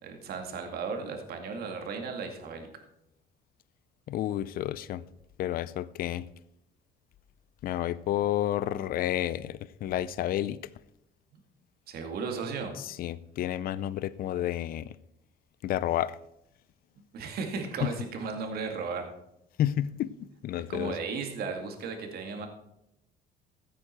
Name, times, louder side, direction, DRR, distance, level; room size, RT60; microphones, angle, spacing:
voice 1, 0.0-2.7 11.3-11.4 11.9-12.7 17.1-19.1 20.7-22.5, right 5 dB, 65° right, 2.3 m, -35 dB
voice 2, 4.1-5.0 5.4-6.3 7.6-10.6 12.8-14.9 15.6-16.2 17.8-17.9 19.6-20.1 20.4-21.0, left 12 dB, 60° left, 0.5 m, -30 dB
15.0 x 8.8 x 4.5 m
cardioid pair, 110°, 17 cm